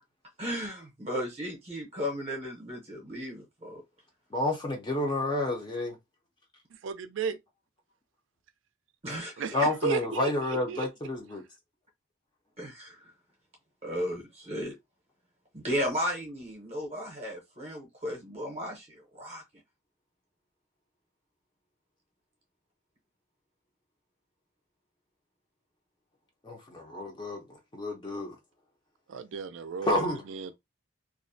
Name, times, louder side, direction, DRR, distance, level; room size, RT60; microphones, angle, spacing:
voice 1, 0.4-3.8 9.0-9.4 12.6-13.1 13.8-14.7 15.5-19.4, equal, 30° right, 0.6 m, -35 dB
voice 2, 4.3-6.0 9.5-11.4 26.4-27.4 27.7-28.4 29.8-30.2, left 1 dB, 20° left, 0.5 m, -30 dB
voice 3, 6.8-7.4 9.4-10.9 29.1-30.5, right 6 dB, 75° right, 0.4 m, -34 dB
2.4 x 2.0 x 2.6 m
head